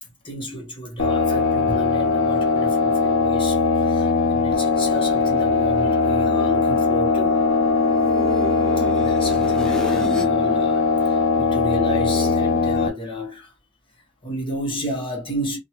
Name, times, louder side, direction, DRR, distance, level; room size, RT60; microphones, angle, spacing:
voice 1, 0.0-7.4 8.8-13.5 14.2-15.6, left 1 dB, 25° left, 1.0 m, -32 dB
sound 1, 1.0-12.9, left 4 dB, 75° left, 0.8 m, -20 dB
sound 2, 5.2-10.4 10.7-12.6, left 1 dB, 5° left, 0.5 m, -35 dB
2.9 x 2.3 x 2.9 m
head